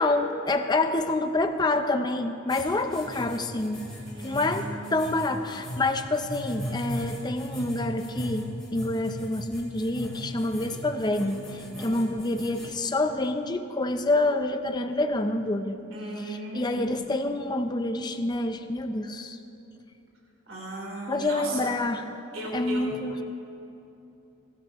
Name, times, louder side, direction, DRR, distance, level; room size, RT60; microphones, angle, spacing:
voice 1, 0.0-3.9 4.2-15.8 16.3-19.4 21.1-22.0 22.5-23.2, left 2 dB, 20° left, 7 dB, 0.5 m, -27 dB
sound 1, 2.5-12.7, equal, 5° left, 2.7 m, -38 dB
voice 2, 4.1-5.3 11.7-12.1 15.9-17.0 20.5-21.7 22.3-22.9, right 1 dB, 60° right, -3 dB, 3.5 m, -37 dB
20.5 x 12.5 x 3.0 m, 2.9 s
head